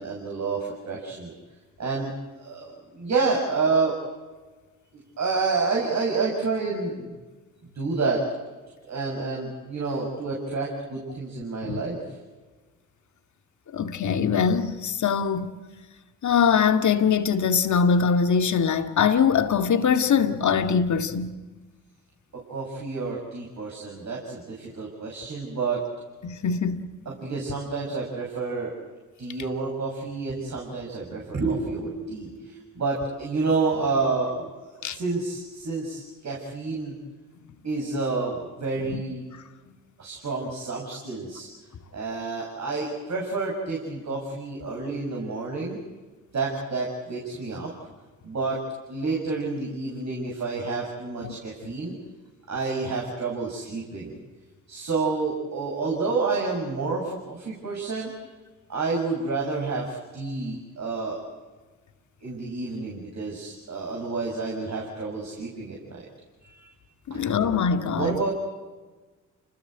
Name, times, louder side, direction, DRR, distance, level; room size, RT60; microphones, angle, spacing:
voice 1, 0.0-1.3 1.8-2.1 2.4-4.0 5.2-7.2 7.7-8.2 8.9-12.0 22.3-25.8 27.1-28.7 29.2-37.0 37.6-39.2 40.0-41.5 41.9-45.8 46.3-47.7 48.2-48.6 48.9-51.9 52.5-54.2 54.7-58.1 58.7-61.2 62.2-66.0 66.4-66.7 67.1-67.4 67.7-68.3, right 4 dB, 50° right, 7.3 m, -29 dB
voice 2, 13.7-15.5 16.2-21.3 26.2-26.9 34.8-35.0 38.9-39.0 51.2-51.3 67.1-68.2, left 6 dB, 55° left, 2.2 m, -22 dB
29.5 x 20.0 x 8.0 m
hypercardioid pair, 50°, 35 cm